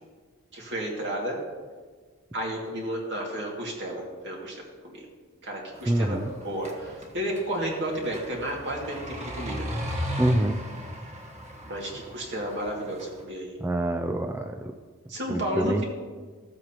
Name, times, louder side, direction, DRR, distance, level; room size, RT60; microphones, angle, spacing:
voice 1, 0.5-1.4 2.3-5.1 5.4-9.7 11.6-13.5 15.1-15.8, right 1 dB, 55° right, -2 dB, 2.2 m, -32 dB
sound 1, 5.7-13.2, equal, 30° right, 1.2 m, -37 dB
voice 2, 5.9-6.3 10.2-10.6 13.6-14.7 15.3-15.8, right 1 dB, 10° right, 5 dB, 0.3 m, -26 dB
15.0 x 7.8 x 2.9 m, 1.5 s
head